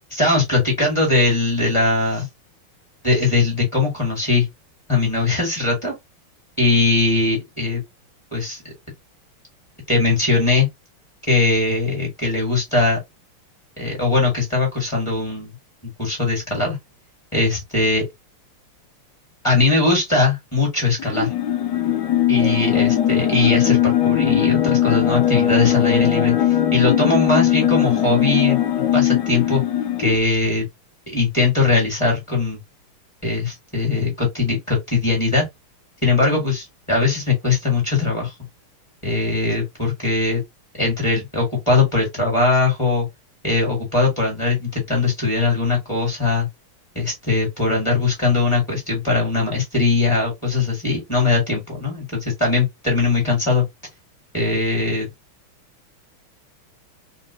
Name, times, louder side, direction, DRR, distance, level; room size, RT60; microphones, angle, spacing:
voice 1, 0.1-2.3 3.0-4.5 4.9-5.9 6.6-7.8 8.3-8.7 9.9-10.7 11.3-13.0 13.8-15.5 16.0-16.8 17.3-18.0 19.4-21.3 22.3-29.6 30.0-30.7 31.1-32.6 33.2-35.5 36.0-38.3 39.0-40.4 40.8-43.1 43.4-46.5 47.0-53.6 54.3-55.1, left 3 dB, 15° left, 1.8 m, -20 dB
sound 1, 21.0-30.2, left 11 dB, 75° left, 1.0 m, -19 dB
3.7 x 2.8 x 2.8 m
omnidirectional pair, 2.4 m